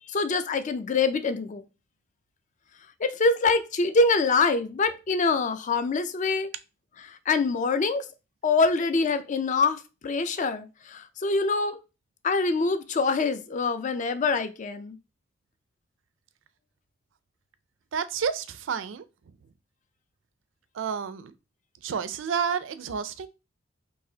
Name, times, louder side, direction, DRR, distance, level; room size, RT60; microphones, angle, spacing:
voice 1, 0.1-1.6 3.0-6.5 7.1-8.0 8.4-11.8 12.2-15.0, left 3 dB, 40° left, 0.4 m, -25 dB
voice 2, 17.9-19.0 20.7-21.3 21.8-23.3, right 6 dB, 75° right, 0.4 m, -30 dB
4.0 x 2.7 x 2.7 m
head